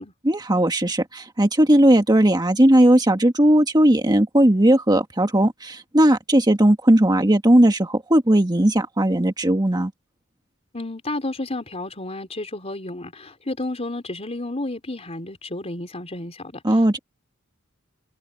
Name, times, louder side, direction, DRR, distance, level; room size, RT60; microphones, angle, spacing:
voice 1, 0.2-9.9 16.6-17.0, right 1 dB, 20° right, 1.6 m, -17 dB
voice 2, 10.7-17.0, left 2 dB, 30° left, 4.3 m, -32 dB
head